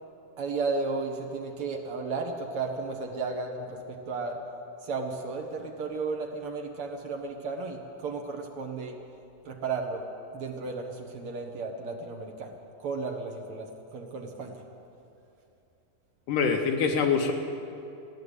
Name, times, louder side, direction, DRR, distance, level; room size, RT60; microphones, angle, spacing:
voice 1, 0.4-4.4 4.8-8.9 9.4-10.0 10.3-14.6, right 4 dB, 65° right, 2 dB, 1.4 m, -34 dB
voice 2, 16.3-17.3, left 5 dB, 75° left, 4 dB, 2.3 m, -24 dB
16.0 x 11.0 x 8.2 m, 2.8 s
omnidirectional pair, 4.1 m